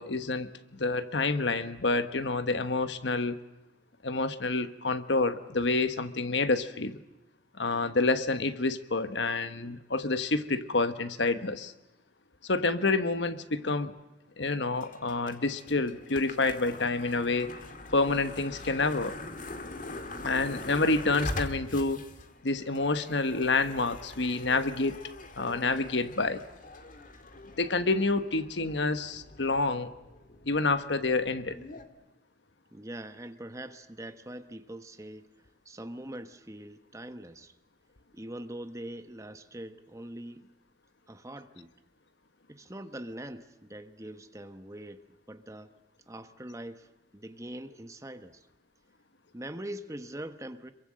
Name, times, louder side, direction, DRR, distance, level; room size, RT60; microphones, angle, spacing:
voice 1, 0.0-3.4 4.0-7.0 7.6-11.7 12.4-13.9 14.4-17.5 17.9-19.2 20.2-22.0 22.4-25.0 25.4-26.4 27.6-29.9 30.5-31.6, left 3 dB, 70° left, 11 dB, 1.4 m, -28 dB
sound 1, 14.8-31.8, left 2 dB, 45° left, 2.1 m, -43 dB
voice 2, 32.7-35.3 35.6-37.5 38.1-40.5 41.1-41.7 42.5-45.7 46.1-48.5 49.3-50.7, right 1 dB, 15° right, 9 dB, 1.2 m, -43 dB
26.5 x 23.5 x 7.7 m, 0.99 s
head